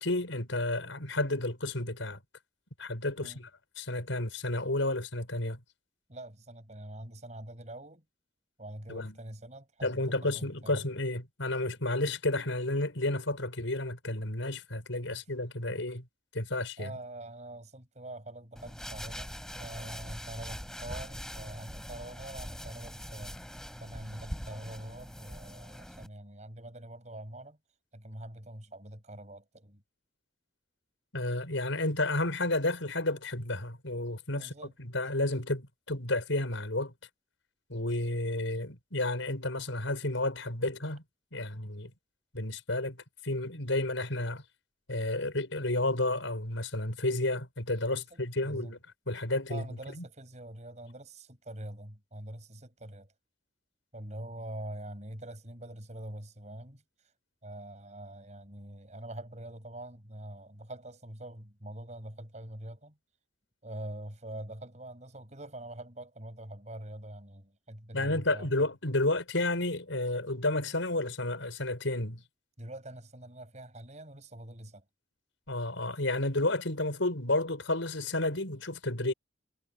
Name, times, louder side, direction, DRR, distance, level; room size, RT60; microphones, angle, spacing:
voice 1, 0.0-2.2 2.8-3.5 3.8-5.6 8.9-9.2 9.8-16.1 16.3-16.9 31.1-36.9 37.7-41.0 41.3-41.9 42.3-44.4 44.9-48.8 49.1-49.6 50.0-50.1 67.9-72.2 75.5-79.1, left 2 dB, 90° left, 5.6 m, -31 dB
voice 2, 6.1-8.0 8.6-10.9 15.1-15.2 15.7-15.8 16.8-19.3 19.6-23.4 23.8-27.6 27.9-29.8 34.3-34.7 47.9-48.7 49.5-53.1 53.9-57.1 57.4-63.0 63.6-68.7 72.6-74.8, right 1 dB, 35° right, 6.6 m, -44 dB
sound 1, 18.6-26.1, equal, 5° left, 3.7 m, -42 dB
head